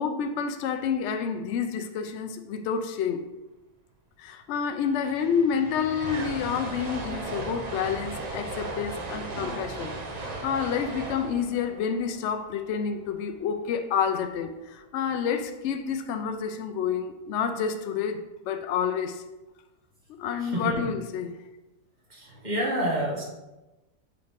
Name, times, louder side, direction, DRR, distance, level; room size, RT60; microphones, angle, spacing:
voice 1, 0.0-3.2 4.2-9.9 10.2-19.2 20.2-21.4, left 7 dB, 85° left, 7 dB, 0.6 m, -29 dB
sound 1, 4.6-4.7 4.8-13.1, right 3 dB, 50° right, 0.5 m, -37 dB
voice 2, 20.4-20.9 22.1-23.2, right 1 dB, 30° right, -2 dB, 1.4 m, -29 dB
6.4 x 5.7 x 3.6 m, 1.1 s
omnidirectional pair, 1.8 m